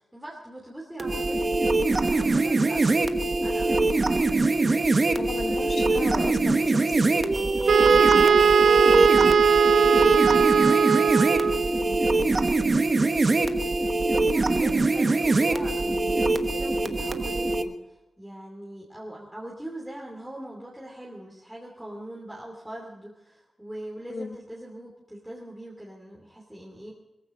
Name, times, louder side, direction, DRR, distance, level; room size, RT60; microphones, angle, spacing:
voice 1, 0.1-6.6 7.9-12.5 13.1-13.4 14.1-17.7 18.2-26.9, right 1 dB, 5° right, -3 dB, 2.8 m, -41 dB
sound 1, 1.0-17.6, right 2 dB, 35° right, 1.1 m, -23 dB
voice 2, 5.2-8.0 13.4-13.6 24.1-24.4, left 4 dB, 50° left, 9 dB, 0.9 m, -36 dB
Wind instrument woodwind instrument, 7.7-11.7, right 6 dB, 85° right, 0.8 m, -19 dB
21.5 x 15.0 x 3.8 m, 1.0 s
wide cardioid pair, 180°, 0 cm